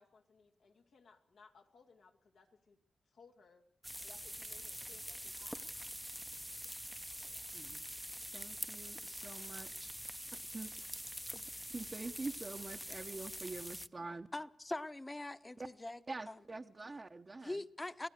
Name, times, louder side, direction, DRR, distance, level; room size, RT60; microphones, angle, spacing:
voice 1, 0.0-2.8 3.1-3.6 4.0-5.7 7.2-7.5, left 4 dB, 85° left, 2.4 m, -63 dB
sound 1, 3.8-13.9, equal, ahead, 0.8 m, -45 dB
voice 2, 8.3-9.9 10.5-10.9 11.3-11.4 11.7-14.3 15.6-15.7 16.1-17.6, right 3 dB, 45° right, 1.0 m, -45 dB
voice 3, 14.3-16.0 16.3-16.4 17.4-18.1, left 2 dB, 25° left, 1.1 m, -42 dB
26.0 x 16.5 x 6.7 m
cardioid pair, 50°, 0 cm